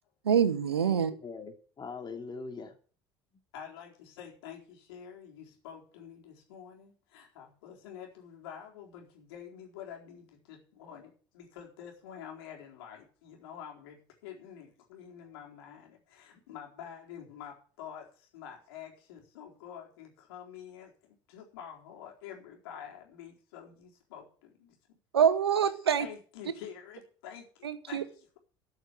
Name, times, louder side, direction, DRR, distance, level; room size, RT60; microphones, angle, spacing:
voice 1, 0.2-1.1 25.1-26.1 27.6-28.0, right 8 dB, 90° right, 12 dB, 1.0 m, -25 dB
voice 2, 0.8-2.8, left 4 dB, 35° left, 4 dB, 3.2 m, -42 dB
voice 3, 3.5-25.0 26.0-28.4, left 8 dB, 75° left, 0 dB, 4.2 m, -48 dB
13.0 x 6.5 x 8.4 m, 0.42 s
hypercardioid pair, 65°, 13 cm